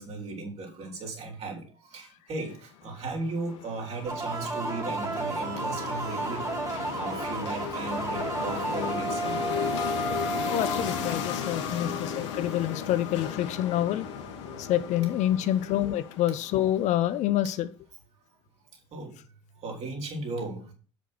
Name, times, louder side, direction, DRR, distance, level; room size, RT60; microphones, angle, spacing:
voice 1, 0.0-6.5 7.0-9.5 11.6-12.0 15.4-15.5 18.9-19.1 19.6-20.7, right 3 dB, 45° right, 0 dB, 4.1 m, -36 dB
sound 1, 2.9-17.2, left 9 dB, 70° left, 1.7 m, -36 dB
sound 2, 4.1-11.6, right 3 dB, 20° right, 2.7 m, -33 dB
sound 3, 4.2-16.8, right 2 dB, 80° right, 2.2 m, -44 dB
voice 2, 10.5-14.1 14.6-17.7, left 12 dB, 50° left, 13 dB, 0.8 m, -27 dB
8.1 x 6.3 x 6.0 m, 0.39 s
figure-of-eight pair, 65°, 15 cm